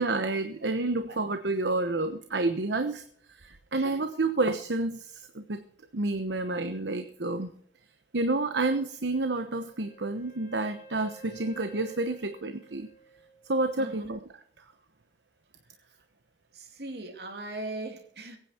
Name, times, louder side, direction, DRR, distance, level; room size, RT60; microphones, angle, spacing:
voice 1, 0.0-3.0 3.3-5.6 5.9-7.5 8.1-12.9 13.4-14.2, right 2 dB, 85° right, 1.0 m, -29 dB
Wind instrument woodwind instrument, 9.0-13.9, right 2 dB, 55° left, 2.2 m, -53 dB
voice 2, 13.8-14.1 16.5-18.4, right 2 dB, 65° right, 2.7 m, -39 dB
21.5 x 9.5 x 4.5 m
head